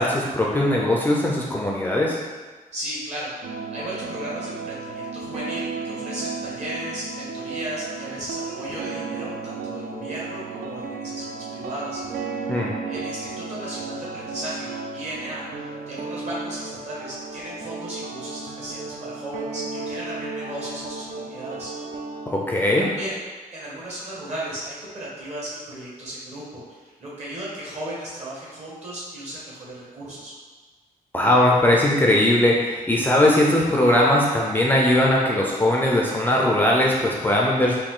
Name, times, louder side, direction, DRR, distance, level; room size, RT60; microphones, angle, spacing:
voice 1, 0.0-2.2 12.5-12.7 22.3-22.9 31.1-37.8, left 1 dB, 15° left, -2 dB, 0.4 m, -19 dB
voice 2, 2.7-21.7 22.8-23.2 23.5-30.3, right 1 dB, 50° right, -6 dB, 1.4 m, -35 dB
sound 1, 3.4-22.3, right 4 dB, 65° right, 0.5 m, -34 dB
4.0 x 2.6 x 3.6 m, 1.3 s
wide cardioid pair, 130°, 15 cm